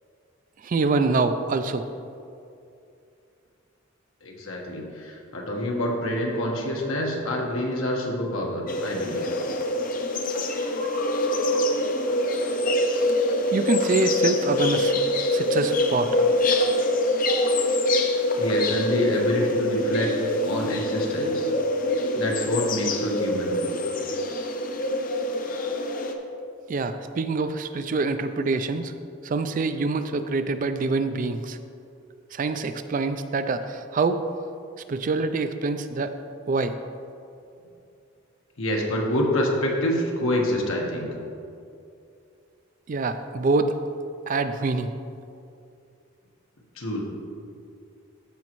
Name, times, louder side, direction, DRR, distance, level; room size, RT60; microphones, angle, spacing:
voice 1, 0.6-1.9 13.5-15.0 15.3-16.2 26.7-28.9 29.2-31.6 32.3-34.2 34.9-36.1 36.5-36.8 42.9-43.8 44.3-44.9, right 3 dB, 40° right, 9 dB, 0.3 m, -25 dB
voice 2, 4.2-9.3 18.4-20.1 20.5-21.5 22.1-23.5 38.6-41.1 46.7-47.0, left 1 dB, 80° left, -1 dB, 1.3 m, -26 dB
sound 1, 8.7-26.1, left 1 dB, 40° left, 0.6 m, -25 dB
14.0 x 5.2 x 3.0 m, 2.5 s
head